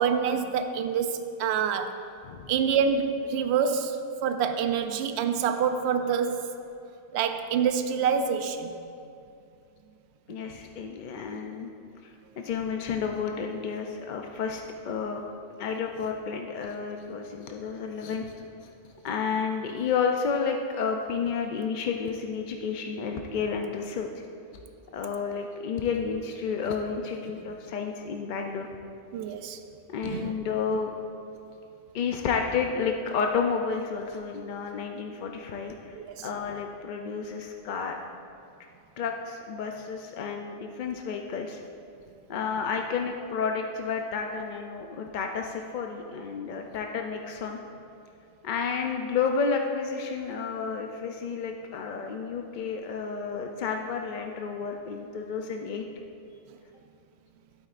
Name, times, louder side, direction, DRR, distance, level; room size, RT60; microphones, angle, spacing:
voice 1, 0.0-1.9 2.5-6.4 7.1-8.8 29.1-29.6 30.0-30.3 35.9-36.3, right 7 dB, 65° right, 8 dB, 0.8 m, -26 dB
voice 2, 10.3-11.7 12.0-15.2 15.6-18.3 18.6-18.7 19.0-24.1 24.9-28.7 29.9-30.9 31.9-38.0 39.0-41.6 42.3-47.6 48.4-55.9, left 5 dB, 60° left, 3 dB, 0.5 m, -31 dB
11.5 x 8.9 x 2.5 m, 2.5 s
omnidirectional pair, 1.3 m